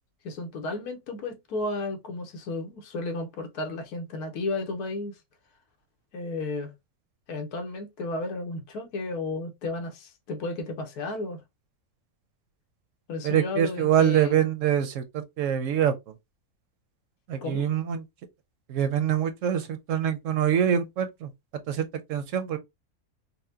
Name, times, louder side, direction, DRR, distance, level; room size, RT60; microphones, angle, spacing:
voice 1, 0.2-5.1 6.1-6.7 7.3-11.4 13.1-14.4 17.4-17.7, left 2 dB, 85° left, 1.3 m, -33 dB
voice 2, 13.2-15.9 17.3-18.0 18.7-21.3 21.7-22.6, right 9 dB, 65° right, 0.8 m, -25 dB
4.2 x 2.1 x 2.6 m
omnidirectional pair, 1.6 m